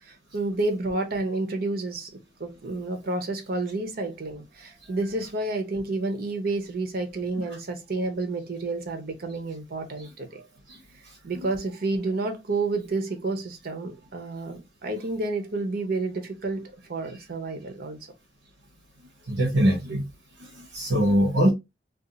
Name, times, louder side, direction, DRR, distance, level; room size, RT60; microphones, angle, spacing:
voice 1, 0.1-2.1 2.4-10.5 11.2-18.0, right 2 dB, 55° right, 0.7 m, -30 dB
voice 2, 19.3-20.0 20.4-21.5, equal, 80° right, 0.9 m, -22 dB
2.4 x 2.4 x 3.8 m
head